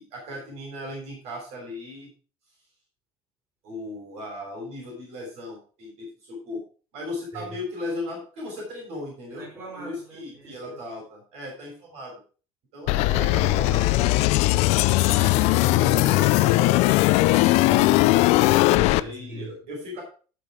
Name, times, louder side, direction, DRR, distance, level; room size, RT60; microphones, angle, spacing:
voice 1, 0.0-2.1 3.6-6.6 6.9-9.5 9.8-12.2 12.7-14.3 14.8-16.8 18.9-20.0, left 1 dB, 60° right, -1 dB, 6.5 m, -36 dB
voice 2, 9.3-10.8 12.9-13.3 15.1-15.7 17.6-19.6, right 1 dB, 20° right, -3 dB, 5.2 m, -41 dB
sound 1, 12.9-19.0, left 19 dB, 70° left, 0.5 m, -19 dB
14.0 x 6.1 x 5.0 m, 0.39 s
cardioid pair, 145°, 12 cm